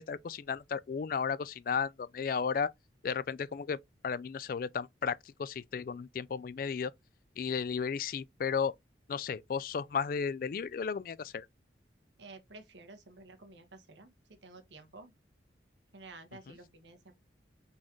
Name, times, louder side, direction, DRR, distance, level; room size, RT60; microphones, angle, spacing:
voice 1, 0.0-2.7 3.0-6.9 7.4-8.7 9.1-11.5, left 6 dB, 50° left, 0.3 m, -34 dB
voice 2, 12.2-15.1 15.9-17.1, right 3 dB, 85° right, 1.3 m, -52 dB
4.1 x 3.7 x 3.0 m
head